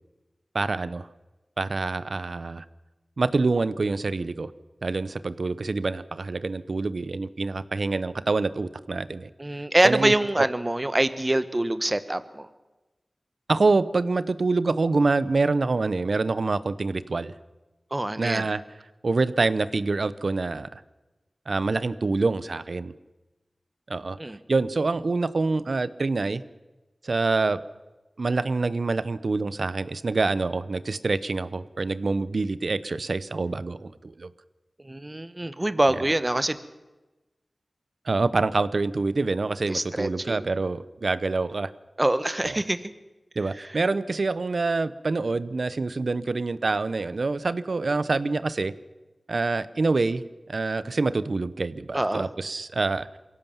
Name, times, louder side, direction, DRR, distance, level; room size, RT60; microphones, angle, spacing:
voice 1, 0.5-1.1 1.6-2.6 3.2-4.5 4.8-9.3 9.8-10.5 13.5-17.3 18.2-18.6 19.0-20.8 21.5-22.9 23.9-24.2 24.5-26.4 27.0-27.6 28.2-34.3 38.0-41.7 42.4-42.6 43.4-48.7 49.3-53.1, right 3 dB, 75° right, 15 dB, 0.8 m, -26 dB
voice 2, 9.4-12.5 17.9-18.4 24.2-24.4 34.8-36.6 39.7-40.4 42.0-42.9 51.9-52.3, right 1 dB, 30° right, 12 dB, 1.3 m, -25 dB
23.0 x 16.5 x 7.2 m, 1.1 s
cardioid pair, 40°, 0 cm